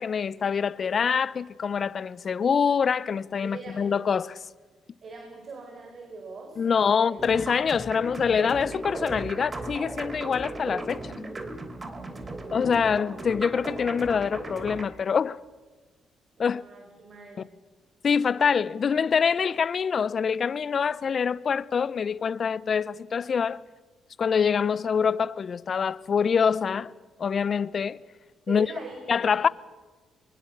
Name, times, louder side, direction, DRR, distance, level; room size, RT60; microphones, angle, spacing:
voice 1, 0.0-4.4 6.6-11.1 12.5-15.4 16.4-16.6 18.0-23.6 24.2-26.9 27.2-28.0 28.5-28.7 29.1-29.5, left 6 dB, 50° left, 0.8 m, -25 dB
voice 2, 3.4-4.0 5.0-7.2 9.3-9.6 12.0-12.6 16.4-17.5 28.5-29.5, right 3 dB, 55° right, 4.8 m, -43 dB
sound 1, 7.2-14.8, right 2 dB, 30° right, 3.1 m, -36 dB
24.0 x 23.0 x 6.8 m
supercardioid pair, 70°, 0 cm